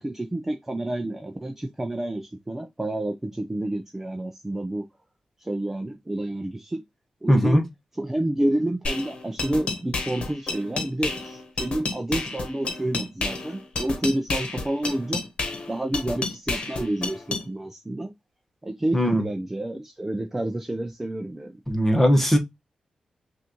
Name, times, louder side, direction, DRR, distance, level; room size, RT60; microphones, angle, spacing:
voice 1, 0.0-4.8 5.4-6.8 7.2-7.6 8.0-15.3 15.7-18.1 18.6-21.5, right 1 dB, 15° right, 0.6 m, -29 dB
voice 2, 7.3-7.6 18.9-19.2 21.7-22.4, equal, 10° left, 1.3 m, -19 dB
sound 1, 8.8-17.4, left 3 dB, 50° left, 1.2 m, -30 dB
5.9 x 2.6 x 3.0 m
wide cardioid pair, 140°, 2 cm